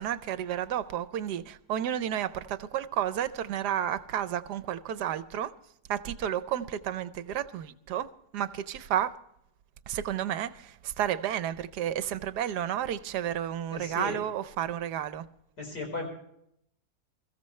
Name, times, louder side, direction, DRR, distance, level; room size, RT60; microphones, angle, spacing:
voice 1, 0.0-5.5 5.9-8.1 8.3-9.2 9.9-15.2, right 10 dB, 75° right, 1.2 m, -31 dB
voice 2, 13.7-14.2 15.6-16.1, left 3 dB, 70° left, 5.3 m, -36 dB
22.5 x 14.5 x 3.2 m
omnidirectional pair, 1.8 m